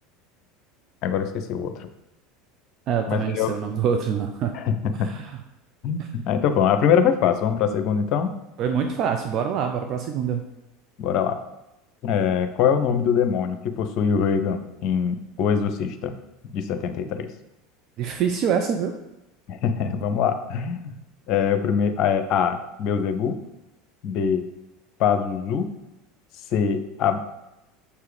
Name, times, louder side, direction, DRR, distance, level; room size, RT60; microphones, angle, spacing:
voice 1, 1.0-1.9 3.1-3.5 4.5-5.1 5.8-8.3 11.0-11.4 12.0-16.1 16.5-17.3 19.5-20.9 21.3-23.4 24.0-24.4 25.0-25.7 26.5-27.2, left 7 dB, 50° left, 8 dB, 0.8 m, -23 dB
voice 2, 2.9-4.6 5.0-5.4 8.6-10.4 18.0-18.9, right 7 dB, 45° right, 5 dB, 0.6 m, -25 dB
6.9 x 4.8 x 5.0 m, 0.91 s
figure-of-eight pair, 75°, 0 cm